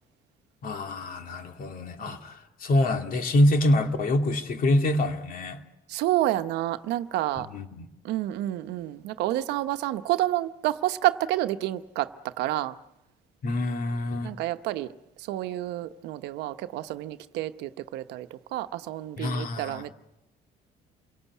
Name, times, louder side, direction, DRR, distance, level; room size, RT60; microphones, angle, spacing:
voice 1, 0.6-5.6 7.4-7.8 13.4-14.3 19.2-19.8, left 1 dB, 55° left, 2.4 m, -26 dB
voice 2, 5.9-7.5 8.0-12.7 14.2-14.9 15.2-19.9, right 14 dB, 85° right, 1.0 m, -29 dB
28.0 x 18.0 x 8.3 m
cardioid pair, 110°, 17 cm